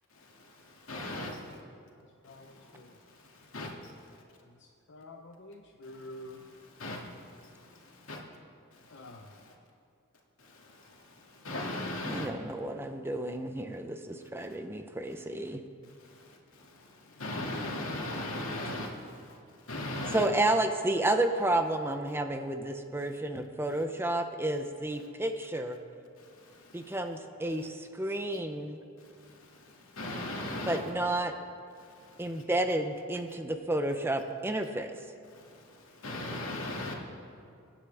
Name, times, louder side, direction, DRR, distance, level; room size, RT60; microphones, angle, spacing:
voice 1, 0.2-1.6 2.3-2.8 3.1-3.9 6.1-8.2 8.8-9.5 10.4-12.3 16.0-19.4 19.7-20.3 26.2-27.0 29.2-30.8 31.8-32.4 35.3-36.9, left 1 dB, 85° left, -1 dB, 2.2 m, -40 dB
voice 2, 2.2-2.9 4.5-6.5 8.9-9.3 17.2-17.3, left 1 dB, 60° left, 2 dB, 0.8 m, -48 dB
voice 3, 12.0-15.6 20.1-25.8 26.7-28.8 30.7-31.3 32.2-34.9, right 1 dB, 10° right, 6 dB, 0.6 m, -31 dB
24.0 x 9.9 x 3.4 m, 2.4 s
head